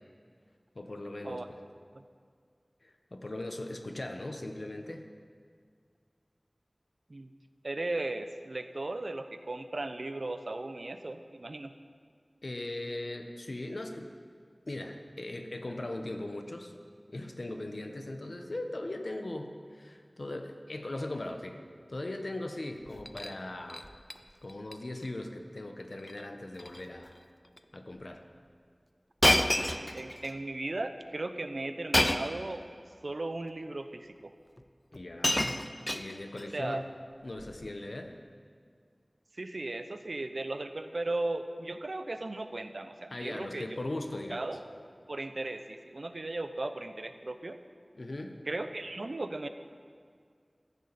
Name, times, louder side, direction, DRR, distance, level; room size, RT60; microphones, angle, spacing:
voice 1, 0.7-1.4 2.8-5.1 12.4-14.1 14.7-16.7 17.1-21.6 21.9-23.9 24.4-27.1 27.7-28.2 34.9-35.6 35.9-36.8 37.2-38.2 43.1-44.4 47.9-48.4, left 1 dB, 70° left, 5 dB, 1.2 m, -39 dB
voice 2, 7.6-11.7 29.7-32.6 33.0-34.3 36.5-36.8 39.4-43.8 44.3-44.6 45.1-47.6 48.5-49.5, right 2 dB, 75° right, 9 dB, 0.7 m, -36 dB
Shatter, 22.9-23.3 23.7-24.2 24.5-24.7 25.0-25.1 26.0-26.2 26.5-26.8 27.6-27.7 29.2-30.3 31.9-32.4 33.4-33.5 34.6-34.7 34.9-36.5 37.4-37.7, left 1 dB, 25° left, 0.7 m, -29 dB
15.0 x 14.5 x 4.3 m, 2.1 s
wide cardioid pair, 45°, 0 cm